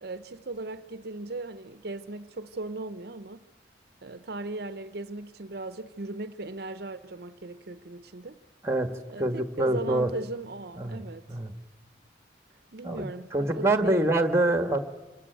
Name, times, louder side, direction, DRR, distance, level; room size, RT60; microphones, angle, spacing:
voice 1, 0.0-3.5 4.0-8.4 9.1-11.3 12.7-14.0, right 2 dB, 55° right, 0.7 m, -37 dB
voice 2, 8.6-10.1 10.8-11.0 11.3-11.5 12.8-14.8, right 1 dB, 15° right, 1.5 m, -26 dB
26.5 x 19.5 x 9.3 m
head